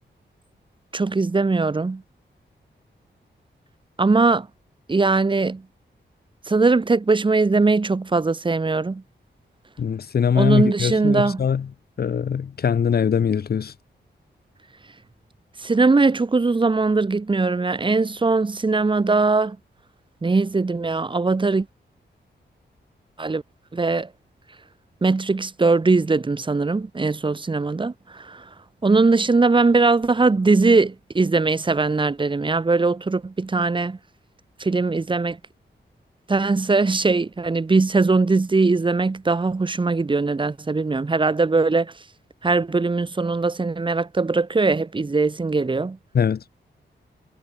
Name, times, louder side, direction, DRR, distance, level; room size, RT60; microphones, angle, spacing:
voice 1, 0.9-2.0 4.0-4.5 4.9-5.6 6.5-9.0 10.3-11.4 15.6-19.6 20.2-21.7 23.2-23.4 23.7-24.1 25.0-28.4 28.8-34.0 34.6-35.4 36.3-41.9 42.4-46.0, right 3 dB, 25° right, 1.5 m, -20 dB
voice 2, 9.8-11.7 12.0-13.7 46.1-46.4, left 7 dB, 55° left, 1.0 m, -22 dB
wide cardioid pair, 155°, 19 cm